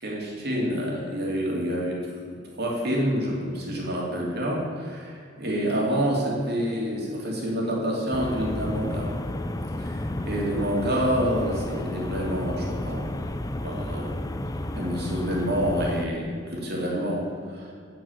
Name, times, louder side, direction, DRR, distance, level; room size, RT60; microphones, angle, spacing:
voice 1, 0.0-2.0 2.5-9.1 9.8-13.0 13.6-14.2 14.7-17.7, equal, 55° right, -2 dB, 2.8 m, -28 dB
sound 1, 8.1-16.1, left 1 dB, 20° left, 0.5 m, -32 dB
8.9 x 8.8 x 7.4 m, 2.4 s
head